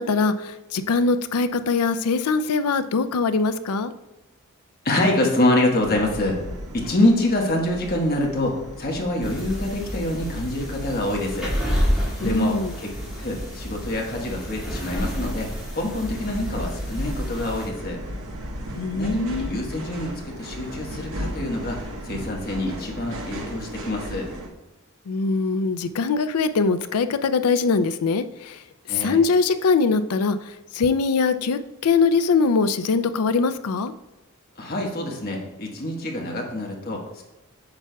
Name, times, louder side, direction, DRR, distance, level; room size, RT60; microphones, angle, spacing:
voice 1, 0.0-3.9 12.2-12.7 18.8-19.6 25.1-28.6 29.0-30.4 30.7-33.9, left 4 dB, 90° left, 11 dB, 0.5 m, -22 dB
voice 2, 4.8-6.4 6.7-11.5 12.2-15.5 15.7-18.0 18.9-21.8 22.0-24.3 28.9-29.2 34.6-37.2, left 1 dB, 40° left, 0 dB, 1.3 m, -25 dB
sound 1, 5.8-24.5, equal, 70° right, 1.2 m, -36 dB
sound 2, 9.2-17.7, equal, 5° right, 1.9 m, -30 dB
8.7 x 6.0 x 2.3 m, 1.1 s
head